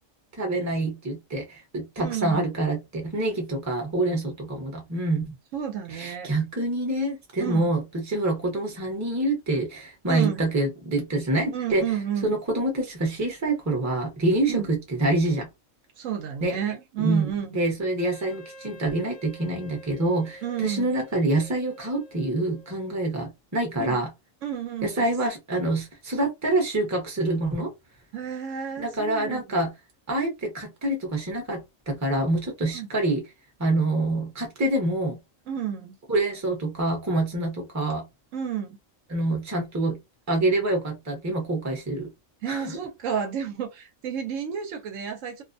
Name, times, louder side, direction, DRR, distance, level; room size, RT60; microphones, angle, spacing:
voice 1, 0.4-5.3 5.9-11.8 12.2-15.5 16.4-16.6 17.0-24.1 24.8-27.7 28.8-29.7 30.1-33.2 33.6-35.2 36.1-38.1 39.1-40.0 40.3-42.1 42.5-42.8, right 2 dB, 15° right, 0.6 m, -26 dB
voice 2, 2.0-2.4 5.5-6.4 7.4-7.7 10.1-10.4 11.5-12.4 14.5-14.7 16.0-17.6 20.4-21.0 23.8-24.1 24.4-25.1 28.1-29.6 32.7-32.9 35.5-36.0 38.3-38.8 42.4-45.4, right 8 dB, 75° right, 0.9 m, -31 dB
Wind instrument woodwind instrument, 18.0-23.0, equal, 65° left, 0.9 m, -48 dB
2.5 x 2.1 x 2.5 m
omnidirectional pair, 1.4 m